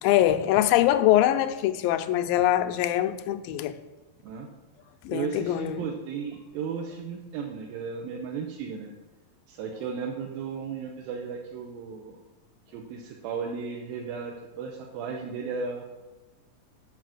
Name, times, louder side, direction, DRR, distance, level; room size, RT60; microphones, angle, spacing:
voice 1, 0.0-3.7 5.1-5.8, left 13 dB, 85° left, 2.2 m, -23 dB
voice 2, 5.1-8.9 9.5-12.2 12.7-15.8, right 6 dB, 90° right, 2.6 m, -35 dB
7.3 x 5.8 x 7.6 m
omnidirectional pair, 4.1 m